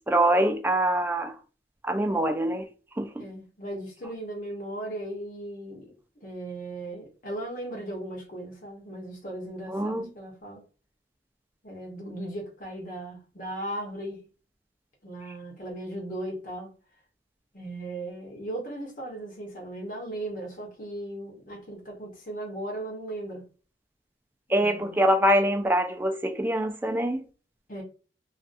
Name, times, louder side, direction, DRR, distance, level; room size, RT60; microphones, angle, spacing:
voice 1, 0.1-1.3 1.9-2.7 3.0-3.2 9.7-10.1 24.5-27.2, right 1 dB, 10° right, 0.3 m, -24 dB
voice 2, 3.2-5.9 6.2-10.6 11.6-14.2 15.0-16.7 17.5-23.5 24.5-24.9 27.7-27.8, right 1 dB, 50° left, 0.8 m, -37 dB
2.4 x 2.3 x 2.5 m
head